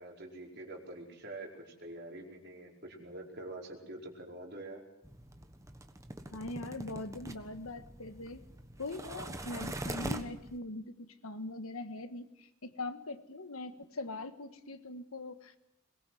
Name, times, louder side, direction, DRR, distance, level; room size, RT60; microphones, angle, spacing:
voice 1, 0.0-4.8, right 2 dB, 50° right, 0 dB, 5.1 m, -46 dB
sound 1, 5.0-10.6, right 1 dB, 15° right, 1.3 m, -43 dB
voice 2, 6.3-8.4 8.8-15.6, left 2 dB, 80° left, 10 dB, 1.6 m, -42 dB
22.5 x 21.5 x 7.8 m, 0.78 s
head